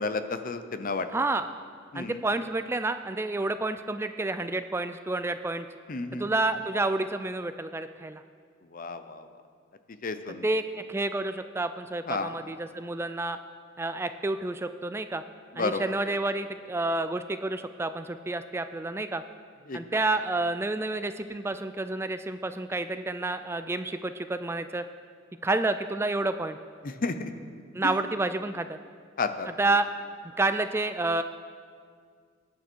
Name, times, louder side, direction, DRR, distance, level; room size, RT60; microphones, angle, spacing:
voice 1, 0.0-1.1 1.9-2.2 5.9-6.3 8.7-9.3 10.0-10.4 12.1-12.3 15.6-15.8 19.7-19.8 26.8-27.3 27.8-28.0 29.2-29.5, left 3 dB, 45° left, 10 dB, 0.7 m, -31 dB
voice 2, 1.1-1.5 1.9-5.7 6.2-8.2 10.4-13.4 13.8-15.2 15.6-19.2 19.7-24.8 25.4-26.6 27.7-28.8 29.6-29.9 30.2-31.2, right 2 dB, 15° right, 10 dB, 0.3 m, -29 dB
19.5 x 9.5 x 4.5 m, 2.1 s
head